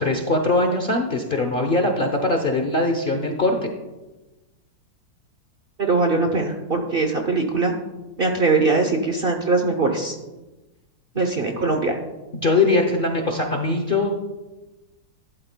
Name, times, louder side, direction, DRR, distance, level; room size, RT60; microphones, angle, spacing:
voice 1, 0.0-3.7 11.1-11.2 12.3-14.1, left 2 dB, 45° left, 3 dB, 0.7 m, -21 dB
voice 2, 5.8-7.7 8.2-10.2 11.2-12.0, right 3 dB, 45° right, 4 dB, 0.8 m, -21 dB
12.0 x 11.0 x 2.2 m, 1.1 s
omnidirectional pair, 1.8 m